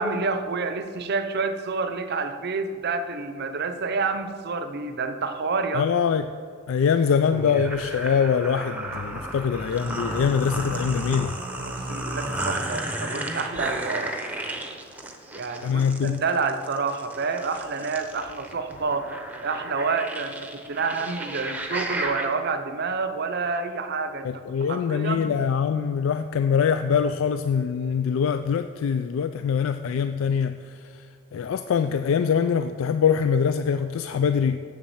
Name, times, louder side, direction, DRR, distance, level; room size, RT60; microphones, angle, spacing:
voice 1, 0.0-5.9 11.7-14.2 15.3-19.1 19.4-24.4 24.7-25.3, right 4 dB, 50° right, 9 dB, 0.6 m, -28 dB
voice 2, 5.7-6.2 6.7-11.3 15.6-16.2 24.2-31.1 31.3-34.6, left 7 dB, 70° left, 10 dB, 0.3 m, -23 dB
sound 1, 7.3-22.3, right 1 dB, 5° right, 0.8 m, -33 dB
7.5 x 7.2 x 7.0 m, 2.1 s
head